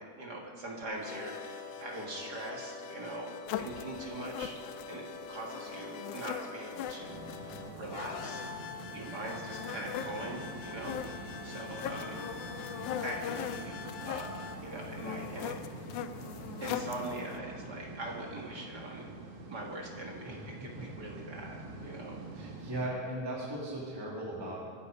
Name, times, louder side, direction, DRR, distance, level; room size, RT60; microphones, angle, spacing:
voice 1, 0.0-3.3 3.6-4.6 4.9-8.4 8.9-12.2 13.0-13.8 14.1-14.3 14.6-15.6 15.8-16.0 16.6-19.1 19.5-22.5, right 1 dB, 40° right, -1 dB, 1.9 m, -42 dB
sound 1, 0.8-14.5, left 5 dB, 65° left, 1.6 m, -45 dB
sound 2, 3.5-17.4, left 10 dB, 90° left, 2.1 m, -41 dB
sound 3, 7.0-22.9, right 2 dB, 80° right, 3.0 m, -46 dB
voice 2, 20.3-20.8 22.3-24.7, right 1 dB, 10° right, -5 dB, 2.1 m, -38 dB
23.5 x 8.7 x 5.3 m, 2.2 s
omnidirectional pair, 3.3 m